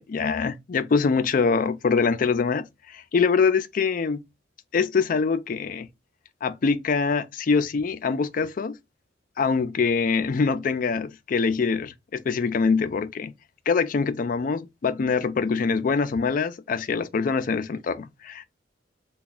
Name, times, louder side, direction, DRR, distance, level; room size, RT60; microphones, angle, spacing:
voice 1, 0.0-4.2 4.7-5.9 6.4-8.8 9.4-13.3 13.7-18.5, left 5 dB, 45° left, 0.4 m, -24 dB
3.4 x 2.2 x 3.9 m
head